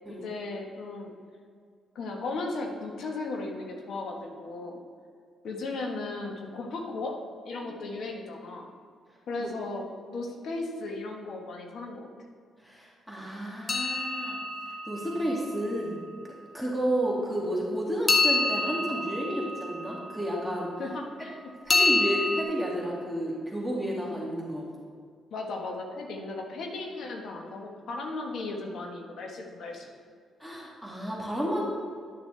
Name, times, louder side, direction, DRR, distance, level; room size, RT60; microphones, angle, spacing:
voice 1, 0.1-1.1 1.9-4.8 5.4-7.1 7.4-8.7 9.3-12.1 20.8-21.4 25.3-29.9, left 3 dB, 65° left, 2 dB, 1.3 m, -36 dB
voice 2, 12.6-14.4 14.9-16.0 16.5-20.7 21.7-24.7 30.4-31.6, equal, 5° left, -4 dB, 2.1 m, -31 dB
sound 1, 13.7-15.7 18.1-20.5 21.7-22.4, left 3 dB, 40° left, 1.2 m, -27 dB
11.0 x 6.6 x 3.3 m, 2.1 s
supercardioid pair, 55°, 0 cm